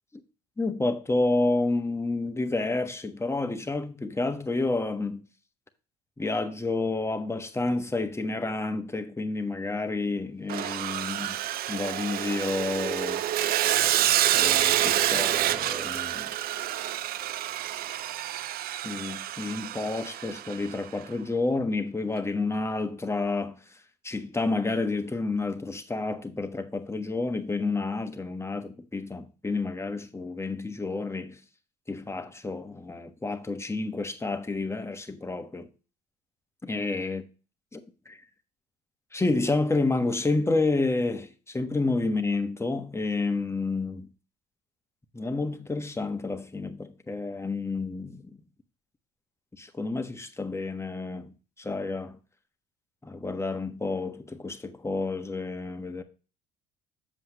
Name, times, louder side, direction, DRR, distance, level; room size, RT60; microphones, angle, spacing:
voice 1, 0.6-5.2 6.2-11.4 11.7-13.2 14.3-16.3 18.8-31.4 31.9-35.7 36.6-37.2 37.7-38.2 39.1-44.1 45.1-48.4 49.6-52.2 53.0-56.0, left 3 dB, 10° left, 1.3 m, -30 dB
Sawing, 10.5-20.7, right 13 dB, 45° right, 0.4 m, -28 dB
7.6 x 7.3 x 3.0 m
hypercardioid pair, 60°, 21 cm